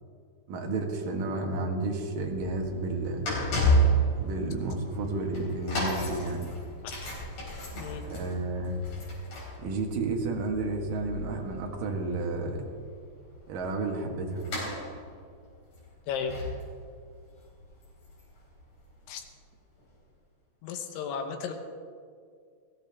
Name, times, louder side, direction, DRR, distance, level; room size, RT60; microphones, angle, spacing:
voice 1, 0.5-3.3 4.2-6.5 7.7-8.8 9.6-12.6 13.5-14.5, right 3 dB, 60° right, 1 dB, 2.8 m, -32 dB
sound 1, 2.2-19.1 19.8-19.9, right 1 dB, 45° left, 5.4 m, -32 dB
voice 2, 16.1-16.4 19.1-19.2 20.6-21.5, left 7 dB, 80° left, 5 dB, 3.4 m, -34 dB
19.5 x 15.5 x 3.6 m, 2.2 s
omnidirectional pair, 5.4 m